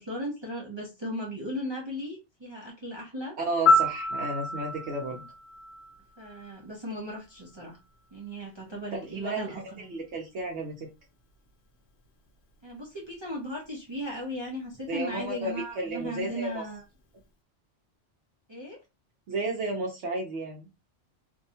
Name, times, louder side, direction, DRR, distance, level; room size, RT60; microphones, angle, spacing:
voice 1, 0.0-3.4 6.2-7.8 8.1-9.9 12.6-16.8 18.5-18.8, equal, 30° right, -3 dB, 0.6 m, -36 dB
voice 2, 3.4-5.3 9.0-10.9 14.9-16.6 19.3-20.7, right 2 dB, 70° right, -1 dB, 1.0 m, -33 dB
Piano, 3.7-6.6 14.7-14.9, left 2 dB, 65° left, 0.9 m, -27 dB
2.7 x 2.2 x 2.7 m, 0.26 s
omnidirectional pair, 1.2 m